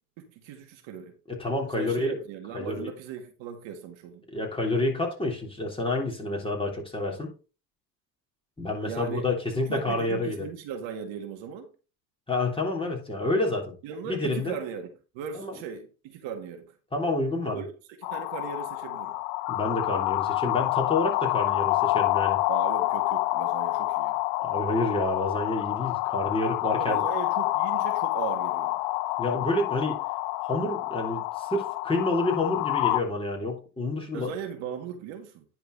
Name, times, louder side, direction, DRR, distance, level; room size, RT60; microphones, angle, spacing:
voice 1, 0.2-1.1 1.7-4.2 8.8-9.2 9.7-11.7 13.8-16.7 17.5-17.7 18.1-19.1 22.5-24.2 26.6-28.8 34.1-35.4, right 7 dB, 65° right, 1.8 m, -38 dB
voice 2, 1.3-2.2 2.5-2.9 4.3-7.3 8.6-10.4 12.3-13.7 14.1-14.6 15.3-15.5 16.9-17.6 19.5-22.4 24.4-27.0 29.2-30.0 30.5-34.3, left 2 dB, 10° left, 3.4 m, -28 dB
sound 1, 18.0-33.0, left 19 dB, 60° left, 0.5 m, -28 dB
10.0 x 4.5 x 4.0 m
hypercardioid pair, 80°, 50 cm